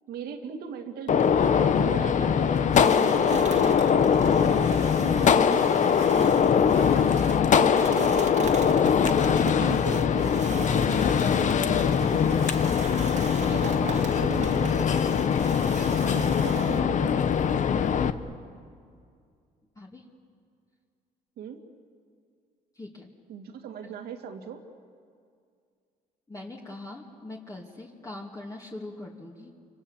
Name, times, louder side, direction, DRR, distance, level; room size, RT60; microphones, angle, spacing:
voice 1, 0.1-3.5 3.9-6.3 6.6-12.7 13.4-15.3 16.0-18.1 21.4-21.6 23.3-24.6, right 7 dB, 75° right, 5 dB, 2.6 m, -39 dB
Gunshot gunfire, 1.1-18.1, left 7 dB, 50° left, 1.0 m, -22 dB
sound 1, 2.7-16.8, right 5 dB, 45° right, 2.2 m, -40 dB
voice 2, 19.8-20.1 22.7-23.1 26.3-29.5, left 2 dB, 20° left, -2 dB, 2.5 m, -41 dB
29.5 x 25.5 x 7.4 m, 2.3 s
cardioid pair, 105°, 16 cm